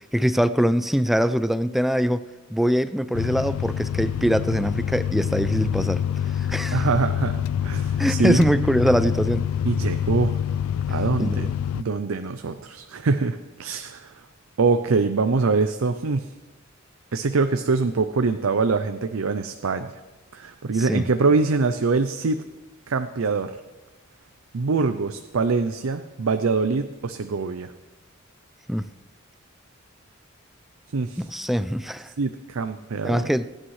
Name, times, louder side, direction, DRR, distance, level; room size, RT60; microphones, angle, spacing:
voice 1, 0.1-2.2 2.5-6.0 6.4-6.8 8.0-9.4 11.2-11.5 20.8-21.0 28.7-28.9 31.2-32.1 33.0-33.5, equal, ahead, 13 dB, 0.3 m, -23 dB
sound 1, 3.1-11.8, left 9 dB, 75° left, 0.3 m, -26 dB
voice 2, 6.7-8.4 9.6-10.3 10.9-11.5 11.7-14.2 14.6-16.3 17.1-19.9 20.3-22.4 22.9-23.6 24.5-27.7 30.9-31.2 32.2-33.3, right 4 dB, 75° right, 9 dB, 0.5 m, -24 dB
25.5 x 8.9 x 3.2 m, 1.2 s
head